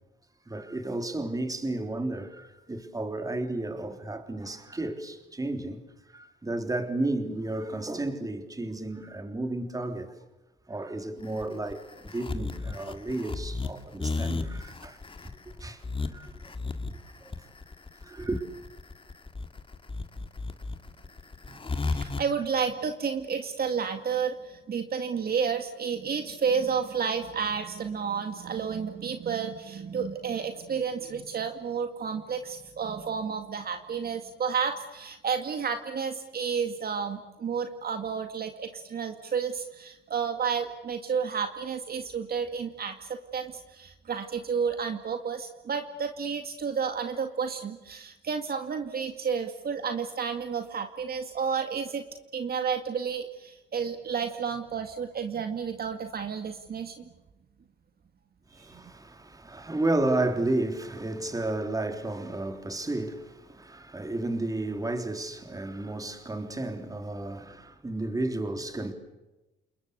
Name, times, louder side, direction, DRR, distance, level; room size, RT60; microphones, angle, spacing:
voice 1, 0.5-5.8 6.1-10.1 10.7-15.0 15.5-16.5 16.8-17.3 18.0-18.4 58.5-68.9, right 2 dB, 20° right, 3.6 m, -32 dB
sound 1, 11.2-22.2, left 3 dB, 25° left, 2.3 m, -34 dB
voice 2, 21.5-52.0 52.3-57.1 58.6-58.8, right 6 dB, 50° right, 2.1 m, -31 dB
29.0 x 21.0 x 8.3 m
cardioid pair, 90°, 20 cm